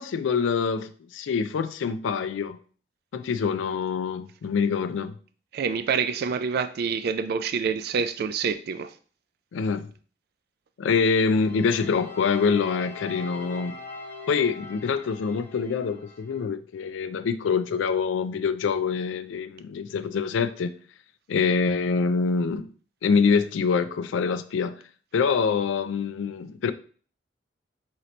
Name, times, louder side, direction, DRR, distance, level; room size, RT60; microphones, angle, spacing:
voice 1, 0.0-2.6 3.1-5.2 9.5-9.9 10.8-13.8 14.3-20.8 21.3-22.7 23.0-24.8 25.1-26.7, left 5 dB, 90° left, 0.4 m, -25 dB
voice 2, 5.5-8.9, right 6 dB, 55° right, 0.3 m, -27 dB
sound 1, 11.2-16.4, left 3 dB, 10° left, 0.7 m, -42 dB
3.9 x 2.8 x 3.2 m
head